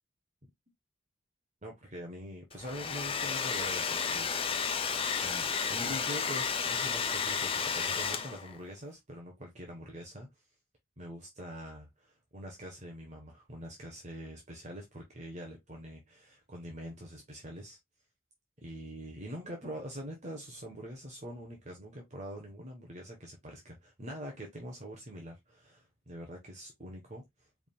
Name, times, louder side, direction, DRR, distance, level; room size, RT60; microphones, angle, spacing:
voice 1, 1.6-4.7 5.2-10.3 11.0-17.8 18.6-27.2, equal, 35° right, 1.1 m, -44 dB
Domestic sounds home sounds, 2.5-8.6, left 6 dB, 30° left, 0.5 m, -32 dB
4.8 x 3.6 x 2.3 m
head